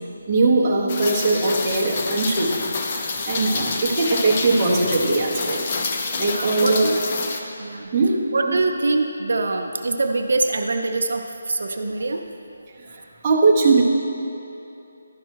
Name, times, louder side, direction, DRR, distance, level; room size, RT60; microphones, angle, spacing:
voice 1, 0.3-2.5 3.3-5.7 6.2-6.9 7.9-8.2 8.5-8.6 13.2-13.8, right 3 dB, 15° right, -5 dB, 0.8 m, -20 dB
Rain, 0.9-7.4, left 4 dB, 25° left, 0.5 m, -28 dB
voice 2, 6.1-7.0 7.6-7.9 8.3-12.2, right 3 dB, 65° right, 4 dB, 0.6 m, -24 dB
12.0 x 5.5 x 4.6 m, 2.9 s
hypercardioid pair, 175°, 0 cm